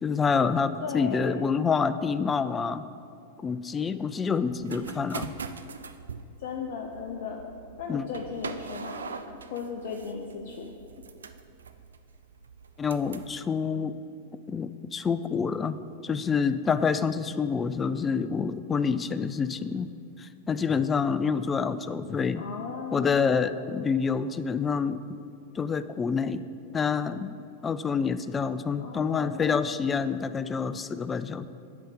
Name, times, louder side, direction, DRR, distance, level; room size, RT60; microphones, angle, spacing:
voice 1, 0.0-2.9 3.4-5.3 7.9-8.0 12.8-14.0 14.5-15.8 16.0-19.9 20.2-22.4 22.9-25.0 25.6-26.4 26.7-27.3 27.6-31.5, left 5 dB, 20° left, 14 dB, 0.3 m, -27 dB
voice 2, 0.8-1.4 6.4-7.5 7.8-10.7 22.4-23.5 28.8-29.6, left 5 dB, 60° left, 2 dB, 0.6 m, -37 dB
sound 1, 4.5-13.3, right 5 dB, 80° right, 0.4 m, -42 dB
10.0 x 4.0 x 6.9 m, 2.5 s
figure-of-eight pair, 95°, 0 cm